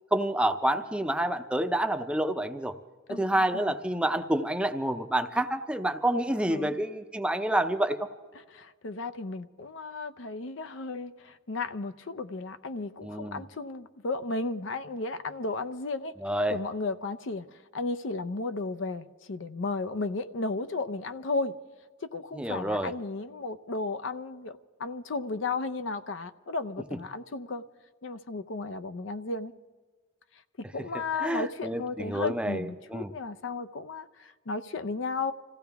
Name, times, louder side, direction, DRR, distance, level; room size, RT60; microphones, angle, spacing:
voice 1, 0.1-2.7 3.1-8.1 13.0-13.4 16.2-16.6 22.4-22.9 31.2-33.1, right 1 dB, 5° right, 0.6 m, -28 dB
voice 2, 3.1-3.6 6.4-6.8 8.5-16.1 16.5-17.4 17.7-21.5 22.0-27.6 28.0-29.5 30.6-35.3, left 3 dB, 70° left, 0.6 m, -34 dB
26.0 x 15.5 x 3.5 m
head